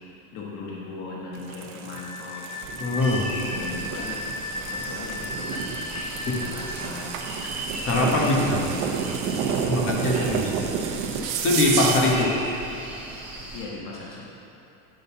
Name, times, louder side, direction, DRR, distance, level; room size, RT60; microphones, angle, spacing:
voice 1, 0.0-2.7 3.3-7.2 7.9-9.2 9.9-10.3 13.5-14.2, left 3 dB, 70° left, -4 dB, 1.4 m, -38 dB
sound 1, 1.3-12.3, right 6 dB, 85° right, 0.9 m, -30 dB
Wind instrument woodwind instrument, 2.0-6.7, left 2 dB, 15° left, 0.4 m, -35 dB
voice 2, 2.8-3.2 6.3-6.4 7.9-8.4 9.6-10.4 11.4-12.3, left 2 dB, 30° left, -1 dB, 1.3 m, -22 dB
sound 2, 3.0-13.7, right 1 dB, 5° right, 1.4 m, -37 dB
9.3 x 4.0 x 6.9 m, 2.8 s
cardioid pair, 155°, 39 cm